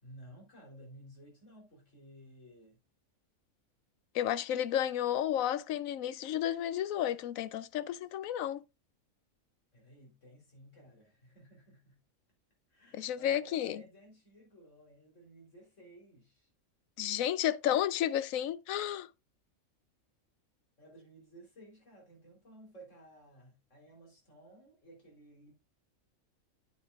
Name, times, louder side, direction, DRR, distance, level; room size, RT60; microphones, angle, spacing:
voice 1, 0.0-2.8 9.7-12.0 12.7-16.5 20.8-25.5, right 1 dB, 65° left, 3.8 m, -56 dB
voice 2, 4.1-8.6 12.9-13.8 17.0-19.1, left 11 dB, 80° left, 1.0 m, -32 dB
8.9 x 8.6 x 2.4 m
omnidirectional pair, 1.4 m